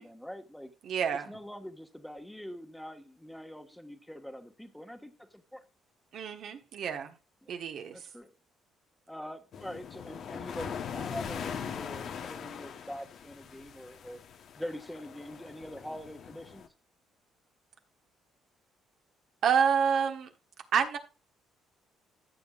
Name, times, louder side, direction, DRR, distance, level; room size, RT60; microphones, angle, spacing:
voice 1, 0.0-0.7 1.1-5.6 7.4-7.5 7.9-8.3 9.1-14.2 14.6-16.7, equal, 5° left, 1.5 m, -44 dB
voice 2, 0.8-1.3 6.1-7.1 7.5-8.0 19.4-20.3 20.7-21.0, right 7 dB, 65° right, 1.3 m, -28 dB
sound 1, 9.5-16.7, left 7 dB, 65° left, 1.1 m, -41 dB
14.0 x 7.0 x 2.5 m
supercardioid pair, 60°, 0 cm